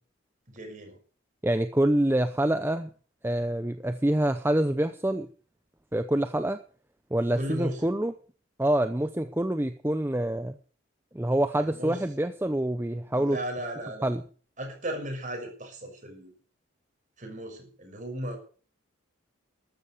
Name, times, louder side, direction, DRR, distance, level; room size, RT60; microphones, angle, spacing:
voice 1, 0.5-1.0 7.3-7.9 11.6-12.0 13.1-14.1 14.6-16.3 17.2-18.4, right 1 dB, 40° right, 4 dB, 6.2 m, -36 dB
voice 2, 1.4-2.9 3.2-5.3 5.9-6.6 7.1-8.1 8.6-10.6 11.1-13.4 14.0-14.2, right 1 dB, 10° right, 10 dB, 0.6 m, -26 dB
13.5 x 13.0 x 6.5 m, 0.42 s
head